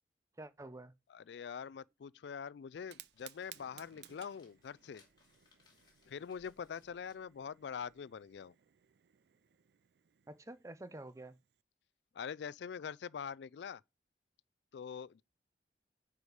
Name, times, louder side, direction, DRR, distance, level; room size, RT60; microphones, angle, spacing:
voice 1, 0.4-0.9 10.3-11.4, right 2 dB, 15° right, 0.5 m, -48 dB
voice 2, 1.1-5.0 6.1-8.5 12.2-13.8 14.7-15.2, left 7 dB, 70° left, 0.4 m, -44 dB
sound 1, 2.7-8.4, left 3 dB, 25° left, 2.3 m, -71 dB
Fire, 2.7-11.6, right 13 dB, 65° right, 0.4 m, -60 dB
9.4 x 4.9 x 4.9 m
head